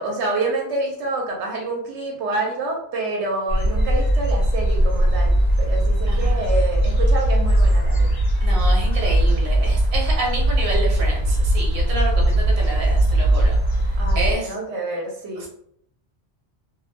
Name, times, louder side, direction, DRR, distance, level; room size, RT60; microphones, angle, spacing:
voice 1, 0.0-8.1 14.0-15.4, right 2 dB, 85° right, -1 dB, 0.9 m, -27 dB
sound 1, 3.5-14.3, right 1 dB, 50° left, 0.6 m, -19 dB
voice 2, 6.1-6.5 8.4-13.6 14.1-14.5 15.4-15.5, right 2 dB, 60° right, -2 dB, 0.9 m, -29 dB
2.3 x 2.1 x 2.6 m, 0.69 s
omnidirectional pair, 1.1 m